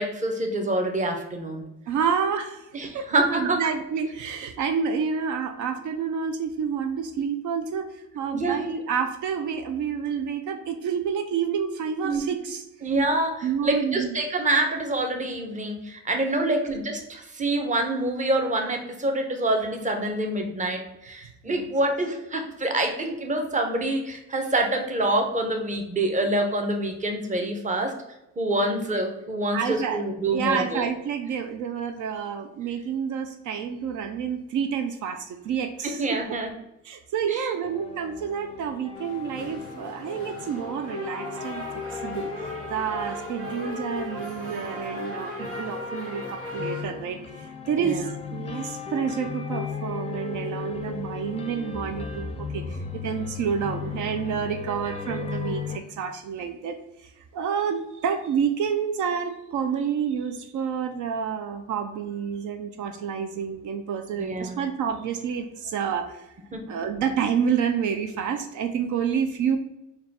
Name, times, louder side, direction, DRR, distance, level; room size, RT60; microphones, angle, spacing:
voice 1, 0.0-1.6 2.7-3.6 8.3-8.7 12.0-12.2 12.8-28.0 28.4-30.8 35.8-36.5 37.2-37.5 47.8-48.0 64.2-64.6 66.5-66.6, right 1 dB, 25° right, 4 dB, 0.8 m, -26 dB
voice 2, 1.9-2.7 2.9-12.6 13.4-14.1 16.4-16.6 21.5-21.7 29.5-30.0 30.3-36.4 36.8-42.3 42.7-66.3 66.7-69.6, right 7 dB, 75° right, 7 dB, 0.5 m, -29 dB
sound 1, 37.6-55.8, left 6 dB, 20° left, 0.4 m, -36 dB
sound 2, 39.0-46.8, equal, 50° right, 1.4 m, -37 dB
4.0 x 2.3 x 4.1 m, 0.91 s
cardioid pair, 90°, 30 cm